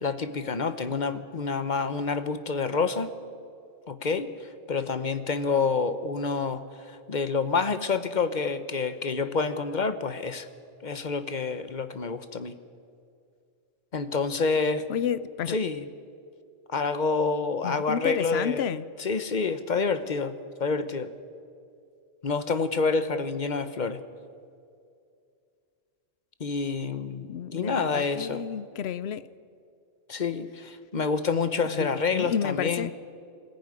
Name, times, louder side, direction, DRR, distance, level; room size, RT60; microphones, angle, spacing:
voice 1, 0.0-3.1 3.9-4.3 4.7-10.5 10.8-12.6 13.9-14.8 15.5-15.8 16.7-18.7 19.0-20.3 20.6-21.1 22.2-24.0 26.4-28.4 30.1-32.9, left 4 dB, 45° left, 1.1 m, -28 dB
voice 2, 14.9-15.6 17.6-18.8 27.3-29.3 31.7-32.9, left 9 dB, 75° left, 0.9 m, -31 dB
21.5 x 14.5 x 9.7 m
omnidirectional pair, 1.1 m